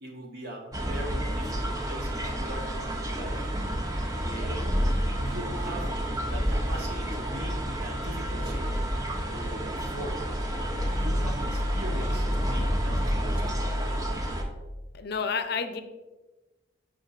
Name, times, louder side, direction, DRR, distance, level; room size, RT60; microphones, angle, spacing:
voice 1, 0.0-3.4 4.2-4.7 5.2-5.9 6.3-8.8 9.3-13.6, right 1 dB, 60° right, 0 dB, 1.3 m, -41 dB
sound 1, 0.7-14.4, equal, 20° right, 0.7 m, -29 dB
voice 2, 15.0-15.8, left 5 dB, 55° left, 9 dB, 0.5 m, -30 dB
8.2 x 5.7 x 2.5 m, 1.2 s
head